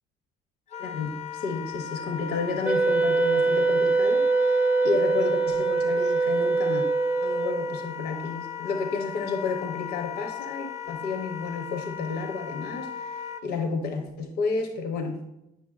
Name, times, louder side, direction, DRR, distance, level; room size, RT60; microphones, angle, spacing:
Wind instrument woodwind instrument, 0.7-13.4, left 8 dB, 40° left, 0.6 m, -37 dB
voice 1, 0.8-6.8 7.2-15.3, left 4 dB, 75° left, 5 dB, 0.8 m, -31 dB
Wind instrument woodwind instrument 2, 2.7-7.8, right 3 dB, 10° right, 0.3 m, -23 dB
8.6 x 5.8 x 2.4 m, 0.89 s
cardioid pair, 110°, 17 cm